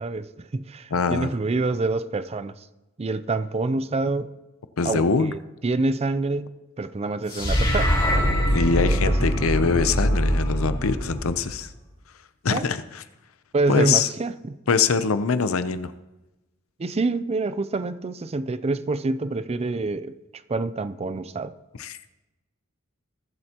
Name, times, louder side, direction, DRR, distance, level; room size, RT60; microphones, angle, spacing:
voice 1, 0.0-2.6 3.0-4.3 4.8-7.9 8.9-9.5 12.5-12.7 13.5-14.6 16.8-20.2 20.5-21.5, right 3 dB, 30° right, 0.4 m, -27 dB
voice 2, 0.9-1.3 4.8-5.3 8.5-11.7 12.4-13.0 13.7-14.1 14.7-15.9 21.8-22.1, left 5 dB, 85° left, 0.6 m, -23 dB
sound 1, 7.3-11.7, equal, 25° left, 3.5 m, -23 dB
21.0 x 7.8 x 2.9 m
head